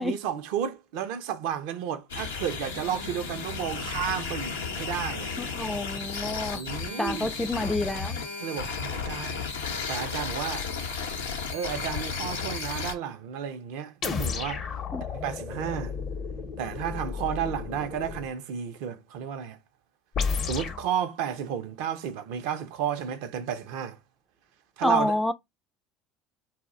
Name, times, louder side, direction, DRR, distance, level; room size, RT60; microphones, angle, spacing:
voice 1, 0.0-5.3 6.5-7.3 8.4-9.4 9.9-10.7 11.5-14.6 15.1-15.9 16.6-19.6 20.4-24.0 24.8-25.1, right 9 dB, 65° right, 0.4 m, -32 dB
sound 1, 2.1-12.9, left 5 dB, 80° left, 0.6 m, -33 dB
voice 2, 5.4-6.6 7.0-8.2 14.9-15.0 24.8-25.3, left 1 dB, 5° left, 0.3 m, -28 dB
sound 2, 14.0-18.3 20.1-20.9, left 5 dB, 45° left, 0.7 m, -32 dB
2.2 x 2.0 x 3.6 m
hypercardioid pair, 65°, 0 cm